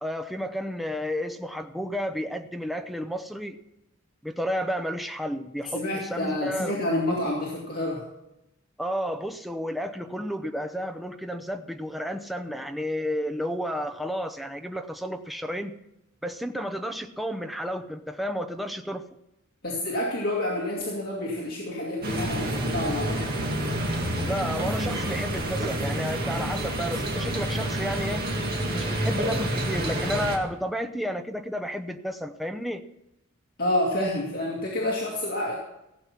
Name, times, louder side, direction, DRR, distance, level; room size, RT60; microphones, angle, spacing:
voice 1, 0.0-3.6 4.2-6.8 8.8-15.7 16.2-19.0 24.2-28.2 28.7-32.8, equal, ahead, 6 dB, 0.7 m, -31 dB
voice 2, 5.7-8.0 19.6-23.3 33.6-35.6, left 1 dB, 45° left, -4 dB, 2.3 m, -28 dB
sound 1, 22.0-30.4, right 1 dB, 45° right, 2.1 m, -28 dB
17.0 x 7.7 x 5.8 m, 0.90 s
head